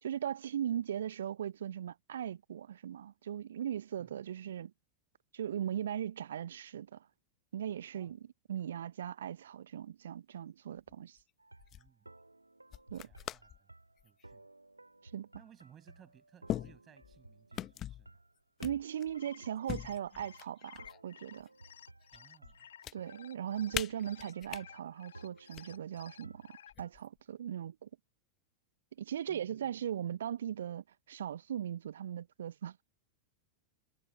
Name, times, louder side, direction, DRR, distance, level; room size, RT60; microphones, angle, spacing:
voice 1, 0.0-4.7 5.3-7.1 7.5-8.2 8.5-11.2 12.9-13.1 15.1-15.3 18.6-21.5 22.9-27.9 29.0-32.8, right 10 dB, 65° right, 1.0 m, -39 dB
sound 1, 10.8-11.2 11.6-11.9 12.7-13.6 14.0-14.3 15.3-15.4 16.5-17.2 17.5-18.1 18.6-19.2 19.7-21.0 21.4-22.2 22.4-22.9 23.7-24.6 25.4-25.6 26.7-27.2, left 12 dB, 30° left, 0.8 m, -41 dB
sound 2, 11.4-26.9, right 2 dB, 85° right, 3.4 m, -58 dB
voice 2, 11.7-12.1 12.9-13.7 14.0-14.4 15.3-18.2 22.1-22.7 29.3-29.7, right 9 dB, 25° right, 6.4 m, -62 dB
sound 3, 19.0-26.7, left 9 dB, 65° left, 1.8 m, -55 dB
figure-of-eight pair, 90°, 0 cm